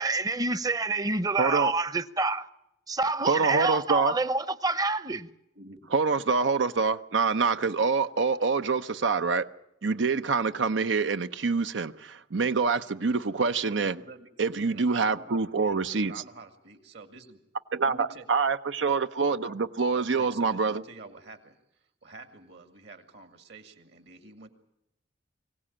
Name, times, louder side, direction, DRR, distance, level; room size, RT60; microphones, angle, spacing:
voice 1, 0.0-2.5 2.9-5.3, right 3 dB, 20° right, 0.7 m, -27 dB
voice 2, 1.4-1.7 3.2-4.1 5.9-9.5 9.8-13.9 14.4-16.1 17.7-20.8, right 4 dB, 90° right, 0.7 m, -26 dB
voice 3, 5.5-5.9 13.6-17.4 17.9-18.3 19.3-19.6 19.9-21.6 22.0-24.5, right 3 dB, 65° right, 2.3 m, -47 dB
23.5 x 17.0 x 8.7 m
head